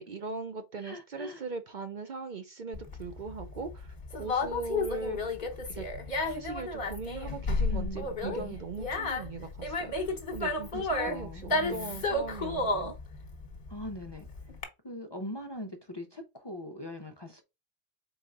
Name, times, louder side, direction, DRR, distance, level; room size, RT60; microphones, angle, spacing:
voice 1, 0.0-5.4 5.7-5.9 6.2-12.9, right 4 dB, 55° right, 0.6 m, -40 dB
voice 2, 0.8-1.4 7.7-8.6 10.7-12.0 13.7-14.3 14.8-17.4, left 1 dB, 30° left, 0.5 m, -41 dB
Conversation, 2.7-14.6, left 2 dB, 55° left, 1.3 m, -32 dB
4.4 x 3.9 x 2.4 m
omnidirectional pair, 1.1 m